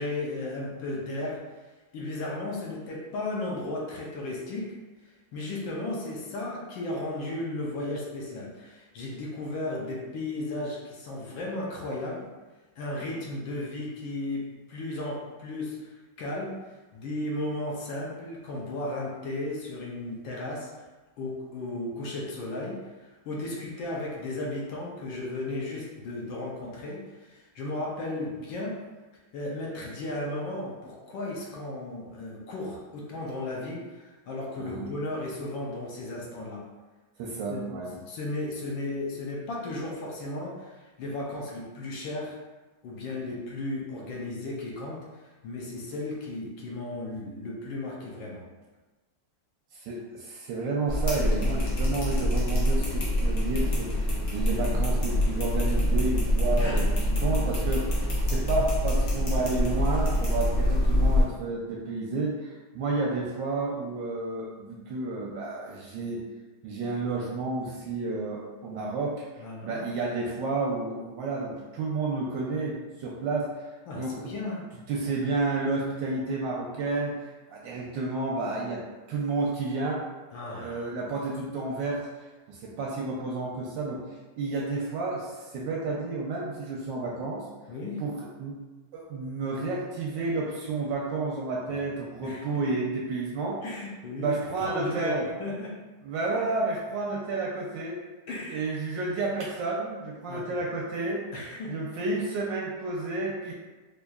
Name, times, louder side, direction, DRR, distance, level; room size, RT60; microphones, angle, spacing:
voice 1, 0.0-1.4 1.9-4.7 5.3-12.3 12.8-16.6 16.9-20.7 21.2-28.8 29.3-36.6 37.5-37.7 38.0-42.4 42.8-45.0 45.4-48.4 56.6-57.3 69.4-69.9 73.9-74.6 80.3-80.8 87.7-88.0 92.2-92.4 93.6-95.7 98.3-98.6 100.3-100.5 101.3-101.7, left 2 dB, 75° left, -3 dB, 1.3 m, -35 dB
voice 2, 34.6-34.9 37.2-38.0 49.7-56.9 57.2-58.0 58.3-66.2 66.6-73.5 74.0-74.3 74.9-77.1 77.5-78.8 79.1-80.0 80.6-82.0 82.5-84.0 84.4-87.4 88.0-88.6 88.9-93.6 94.2-95.2 96.0-98.0 98.5-101.2 101.7-103.5, right 3 dB, 75° right, -3 dB, 1.1 m, -31 dB
sound 1, 50.9-61.2, equal, 55° left, 1.1 m, -25 dB
4.5 x 2.5 x 2.3 m, 1.3 s
omnidirectional pair, 2.3 m